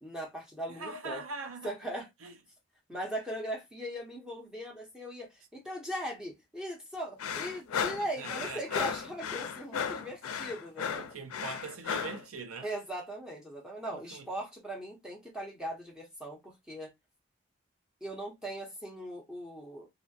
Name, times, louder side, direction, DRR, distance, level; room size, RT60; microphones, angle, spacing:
voice 1, 0.0-1.2 1.6-2.1 2.9-11.1 12.6-16.9 18.0-19.9, right 1 dB, 5° right, 0.7 m, -39 dB
voice 2, 0.7-1.7 2.2-2.4 8.0-8.9 10.9-12.7 13.9-14.3, right 4 dB, 85° right, 0.5 m, -42 dB
sound 1, 7.2-12.2, left 7 dB, 90° left, 0.4 m, -35 dB
2.5 x 2.1 x 2.6 m
head